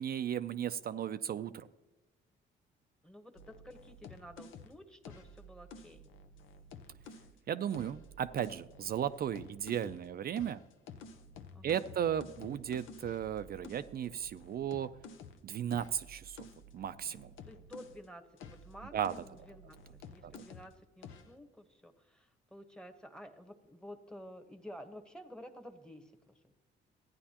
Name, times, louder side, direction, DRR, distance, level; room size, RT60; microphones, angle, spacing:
voice 1, 0.0-1.7 7.5-10.6 11.6-14.9 15.4-16.5 16.7-17.3 18.9-19.1 20.2-20.3, right 9 dB, 50° right, 11 dB, 0.4 m, -35 dB
voice 2, 3.0-6.1 11.5-11.9 17.4-26.5, equal, 5° left, 6 dB, 1.1 m, -52 dB
sound 1, 3.4-7.3 7.7-10.1 10.4-18.0 18.4-20.7 21.0-21.3, left 3 dB, 85° left, 0.8 m, -52 dB
14.5 x 9.6 x 2.9 m, 1.1 s
cardioid pair, 90°, 20 cm